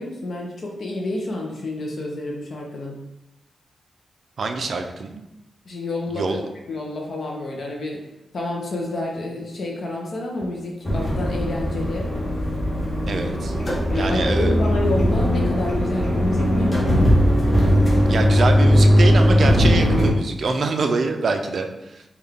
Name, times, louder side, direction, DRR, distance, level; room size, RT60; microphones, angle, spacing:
voice 1, 0.0-3.0 5.7-6.4 6.7-8.0 8.3-12.1 13.9-17.1, left 1 dB, 50° left, -1 dB, 0.5 m, -29 dB
voice 2, 4.4-5.2 6.1-6.4 13.1-13.5 13.9-14.6 18.1-22.0, right 3 dB, 50° right, 5 dB, 0.3 m, -25 dB
sound 1, 10.8-20.1, equal, 25° left, 0.9 m, -19 dB
3.7 x 2.2 x 3.4 m, 0.94 s
wide cardioid pair, 160°, 0 cm